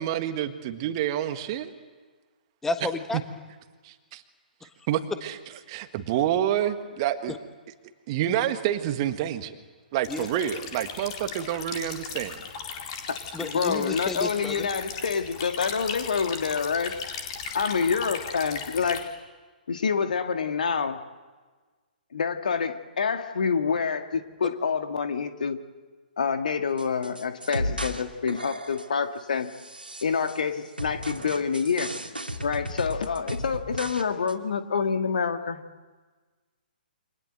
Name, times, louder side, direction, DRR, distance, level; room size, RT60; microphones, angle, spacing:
voice 1, 0.0-1.7 3.8-4.2 4.9-5.4 5.7-7.3 8.1-9.6 9.9-12.4, right 11 dB, 30° right, 9 dB, 1.6 m, -28 dB
voice 2, 2.6-3.2 10.1-10.3 13.3-14.6, left 2 dB, 5° left, 8 dB, 1.4 m, -31 dB
sound 1, 10.0-19.0, left 6 dB, 35° left, 4.1 m, -37 dB
voice 3, 13.1-17.0 17.5-19.1 19.7-21.0 22.1-25.6 26.2-29.5 30.0-32.0 32.4-35.6, left 6 dB, 55° left, 8 dB, 1.8 m, -27 dB
sound 2, 26.8-28.0 28.3-29.0 29.5-30.4 30.8-34.0 34.3-34.4, equal, 80° right, 2.9 m, -34 dB
29.0 x 25.5 x 7.8 m, 1.4 s
figure-of-eight pair, 125°, 5 cm